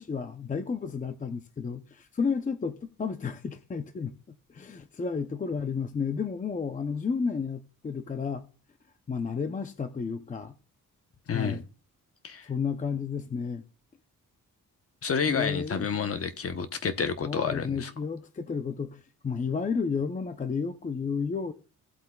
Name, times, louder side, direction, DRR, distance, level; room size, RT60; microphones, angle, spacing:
voice 1, 0.0-8.4 9.1-10.5 11.3-11.6 12.4-13.7 15.3-15.9 17.2-21.5, left 5 dB, 25° left, 0.5 m, -32 dB
voice 2, 11.3-11.6 12.2-12.5 15.0-17.9, left 6 dB, 45° left, 0.9 m, -29 dB
17.5 x 7.9 x 2.2 m
wide cardioid pair, 135°, 33 cm